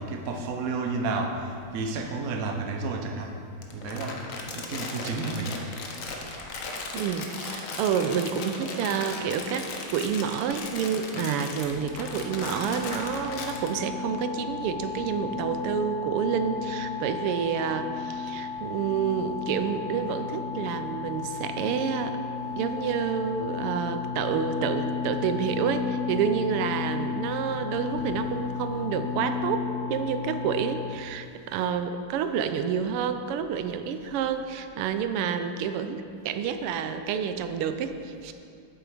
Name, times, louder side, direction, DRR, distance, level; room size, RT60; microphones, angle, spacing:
voice 1, 0.0-1.3 1.7-3.3 3.7-4.2 4.5-5.5 28.0-28.1, right 3 dB, 60° right, 3 dB, 0.9 m, -31 dB
Crumpling crinkling, 3.6-13.7, left 3 dB, 60° left, 0.8 m, -37 dB
voice 2, 6.9-22.2 22.6-38.3, right 7 dB, 85° right, 9 dB, 1.5 m, -29 dB
sound 1, 11.6-31.0, left 6 dB, 90° left, 1.7 m, -34 dB
8.1 x 7.5 x 4.9 m, 2.4 s
omnidirectional pair, 2.4 m